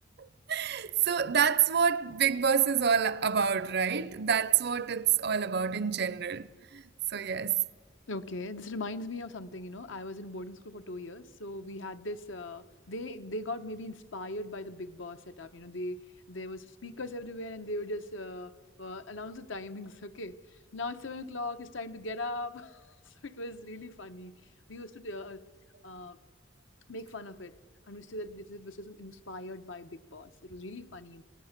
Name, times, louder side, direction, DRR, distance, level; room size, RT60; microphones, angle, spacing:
voice 1, 0.5-6.8 7.1-7.6, right 7 dB, 55° right, 0.6 m, -27 dB
voice 2, 8.1-20.4 20.7-24.3 24.7-25.4 25.8-26.2 26.9-27.5 27.9-31.2, left 2 dB, 75° left, 1.1 m, -40 dB
26.5 x 18.0 x 6.7 m
head